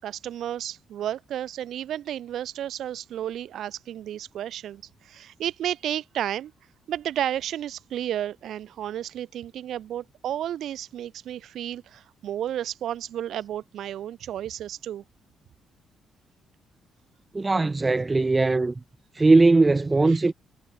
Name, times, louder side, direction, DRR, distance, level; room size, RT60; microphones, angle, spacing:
voice 1, 0.0-6.5 6.9-15.0, right 11 dB, 70° right, 6.7 m, -32 dB
voice 2, 17.3-18.8 19.1-20.3, right 3 dB, 25° right, 4.9 m, -19 dB
cardioid pair, 75°, 0 cm